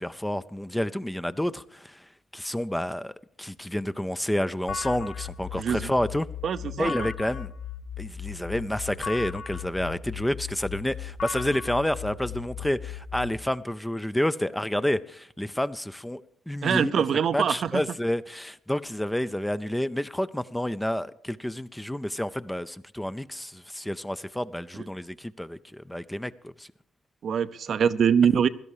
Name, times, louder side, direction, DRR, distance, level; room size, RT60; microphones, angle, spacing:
voice 1, 0.0-6.3 6.8-7.5 8.0-17.0 17.3-26.7, left 1 dB, 5° left, 0.5 m, -29 dB
sound 1, 4.7-13.4, left 8 dB, 55° left, 1.0 m, -37 dB
voice 2, 5.6-5.9 6.4-7.1 16.6-17.8 27.2-28.5, right 7 dB, 60° right, 0.6 m, -24 dB
16.5 x 12.5 x 4.9 m
cardioid pair, 90°, 0 cm